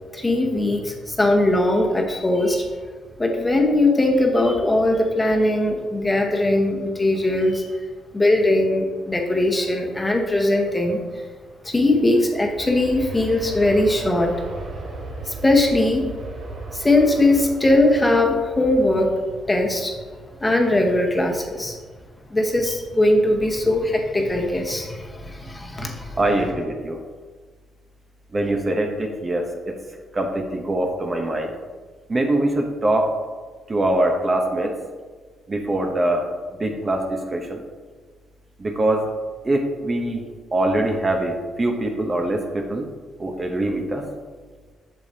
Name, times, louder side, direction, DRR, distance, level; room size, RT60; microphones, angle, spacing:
voice 1, 0.1-2.6 3.2-7.7 8.1-11.0 11.6-14.3 15.3-16.1 16.7-19.1 19.5-19.9 20.4-21.8 22.3-26.2, left 1 dB, 15° left, 2 dB, 1.1 m, -20 dB
Aircraft, 11.5-22.4 22.8-22.9, right 2 dB, 60° right, 1.2 m, -37 dB
voice 2, 26.2-27.0 28.3-29.7 30.1-31.5 32.1-33.1 33.7-34.7 35.5-36.3 36.6-37.6 38.6-39.1 39.4-40.2 40.5-42.8 43.2-44.0, right 1 dB, 30° right, 3 dB, 0.9 m, -23 dB
8.2 x 6.7 x 2.8 m, 1.4 s
cardioid pair, 90°, 0 cm